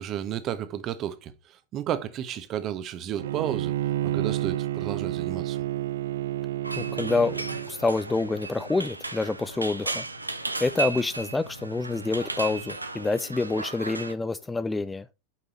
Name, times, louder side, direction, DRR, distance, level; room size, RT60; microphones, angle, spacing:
voice 1, 0.0-5.6, right 10 dB, 35° right, 1.1 m, -32 dB
Bowed string instrument, 3.2-7.7, right 14 dB, 60° right, 0.3 m, -30 dB
sound 1, 6.6-14.1, right 3 dB, 80° right, 0.9 m, -35 dB
voice 2, 6.8-10.0 10.6-15.1, left 3 dB, 10° left, 0.5 m, -27 dB
8.7 x 5.4 x 4.3 m
figure-of-eight pair, 90°, 0 cm